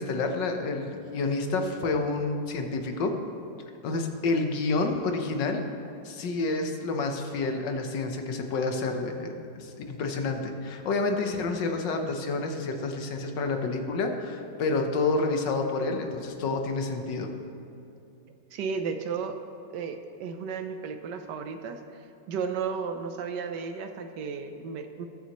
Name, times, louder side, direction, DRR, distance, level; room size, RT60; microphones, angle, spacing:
voice 1, 0.0-3.1 3.8-5.6 6.0-17.3, left 3 dB, 80° left, 4 dB, 1.6 m, -29 dB
voice 2, 18.5-19.4 19.7-21.8 22.3-25.1, right 5 dB, 75° right, 7 dB, 1.3 m, -33 dB
21.0 x 7.1 x 3.0 m, 2.7 s
omnidirectional pair, 1.9 m